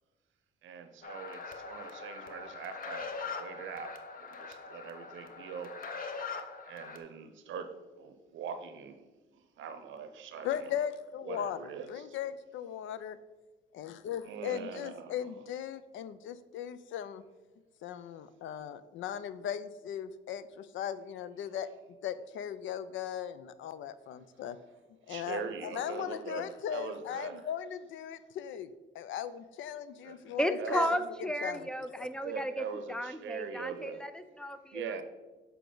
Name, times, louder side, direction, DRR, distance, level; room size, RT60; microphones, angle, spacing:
voice 1, 0.6-5.7 6.7-9.0 9.6-10.8 11.2-12.2 14.2-15.3 25.1-27.4 30.0-30.2 30.6-30.9 32.2-34.0 34.7-35.0, right 6 dB, 75° right, 0.7 m, -42 dB
sound 1, 1.0-7.0, left 5 dB, 45° left, 0.8 m, -42 dB
voice 2, 10.4-13.2 13.7-17.2 17.8-21.7 22.0-24.6 25.1-31.7 32.0-32.1, left 9 dB, 75° left, 0.4 m, -38 dB
voice 3, 30.4-35.0, equal, 5° left, 0.4 m, -34 dB
6.9 x 4.6 x 3.8 m
cardioid pair, 90°, 20 cm